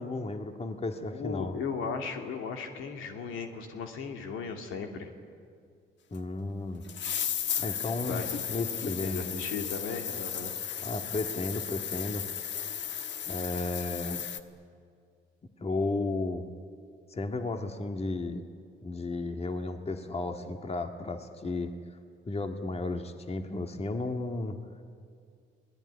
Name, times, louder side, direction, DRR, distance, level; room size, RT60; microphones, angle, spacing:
voice 1, 0.0-1.5 6.1-6.8 7.6-8.2 8.5-9.5 10.8-12.2 13.3-14.2 15.6-16.5 17.1-18.5 18.8-21.7 22.3-24.6, left 2 dB, 30° left, 6 dB, 1.9 m, -33 dB
voice 2, 1.1-5.1 8.0-8.4 8.9-10.5, left 5 dB, 90° left, 4 dB, 2.8 m, -36 dB
sound 1, 6.1-6.2 6.9-14.4, left 8 dB, 65° left, 1.4 m, -35 dB
29.0 x 19.5 x 9.9 m, 2.3 s
cardioid pair, 90°, 20 cm